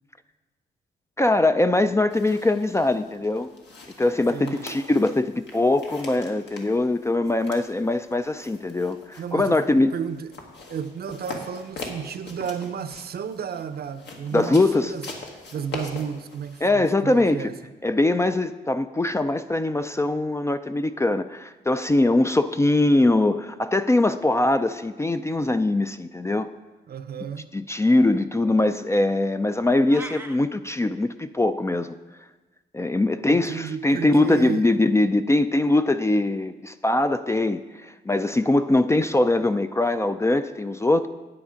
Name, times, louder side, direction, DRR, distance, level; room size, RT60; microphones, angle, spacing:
voice 1, 1.2-3.5 4.0-9.9 14.3-14.9 16.6-17.5 17.8-26.5 27.5-31.9 32.7-41.1, left 2 dB, 15° left, 10 dB, 0.3 m, -22 dB
sound 1, 2.1-16.7, left 3 dB, 70° left, 1.7 m, -42 dB
voice 2, 4.3-4.8 9.2-10.3 10.7-15.0 15.5-17.5 26.9-27.5 33.3-34.7, right 7 dB, 55° right, 11 dB, 0.6 m, -32 dB
sound 2, 29.9-30.4, right 2 dB, 10° right, 0.7 m, -37 dB
9.7 x 8.4 x 5.1 m, 1.2 s
cardioid pair, 100°, 19 cm